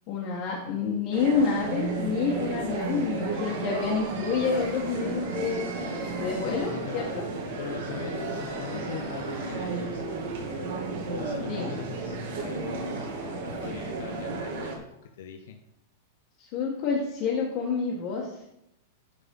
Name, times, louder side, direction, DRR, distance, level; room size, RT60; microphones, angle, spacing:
voice 1, 0.1-5.7 6.2-7.3 11.5-11.7 16.4-18.3, left 5 dB, 35° left, -4 dB, 1.6 m, -28 dB
sound 1, 1.1-14.8, right 3 dB, 55° right, 2.0 m, -33 dB
voice 2, 6.4-7.1 7.6-10.1 11.1-14.7 15.2-15.6, left 7 dB, 70° left, 3 dB, 1.0 m, -40 dB
11.5 x 4.1 x 5.5 m, 0.82 s
supercardioid pair, 175°, 0 cm